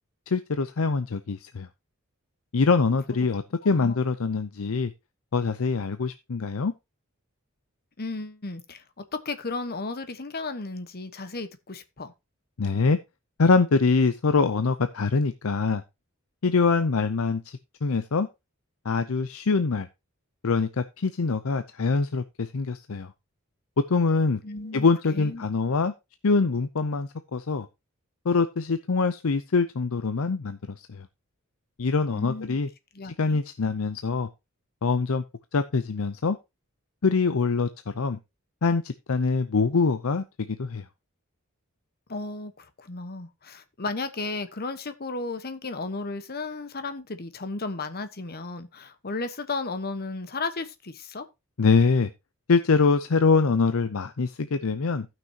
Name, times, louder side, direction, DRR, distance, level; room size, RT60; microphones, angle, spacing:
voice 1, 0.3-1.7 2.5-4.9 5.3-6.7 12.6-13.0 13.4-15.8 16.4-18.3 18.8-19.9 20.4-23.1 23.9-24.4 24.7-25.9 26.2-27.7 28.3-31.1 31.8-32.7 33.0-34.3 34.8-35.2 35.5-36.4 37.0-37.7 37.9-38.2 38.6-40.8 51.6-52.1 52.5-55.1, left 4 dB, 70° left, 0.6 m, -24 dB
voice 2, 3.6-4.0 8.0-12.1 24.4-25.5 32.1-32.6 32.9-33.4 42.1-51.3, left 3 dB, 45° left, 1.1 m, -34 dB
16.0 x 6.1 x 2.9 m
head